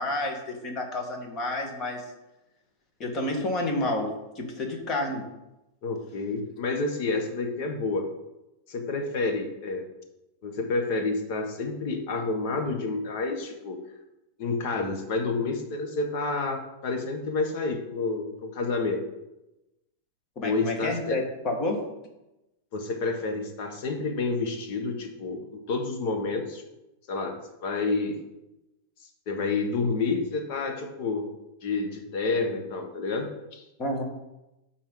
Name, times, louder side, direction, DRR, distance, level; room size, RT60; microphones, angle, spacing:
voice 1, 0.0-2.1 3.0-5.3 20.3-21.8 33.8-34.0, left 1 dB, 30° left, 3 dB, 1.6 m, -30 dB
voice 2, 5.8-8.0 8.7-9.8 10.4-13.8 14.4-19.0 20.4-21.2 22.7-26.6 27.1-27.4 27.6-28.2 29.3-31.3 31.6-33.6, left 3 dB, 50° left, 4 dB, 1.4 m, -29 dB
12.5 x 4.3 x 3.8 m, 0.95 s
supercardioid pair, 155°, 0 cm